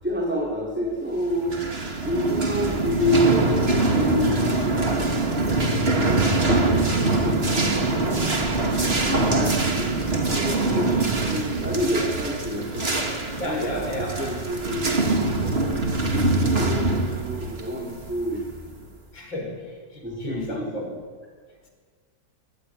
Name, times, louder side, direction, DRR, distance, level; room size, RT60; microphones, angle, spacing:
voice 1, 0.0-1.6 2.0-8.4 9.2-15.9 16.4-18.4 18.8-18.9 20.0-20.7, equal, 5° right, -2 dB, 4.2 m, -29 dB
sound 1, 1.3-18.7, right 2 dB, 30° right, 2.7 m, -24 dB
voice 2, 13.4-14.3 19.1-20.9, left 1 dB, 90° left, 2 dB, 6.5 m, -32 dB
24.0 x 23.0 x 10.0 m, 1.5 s
omnidirectional pair, 2.0 m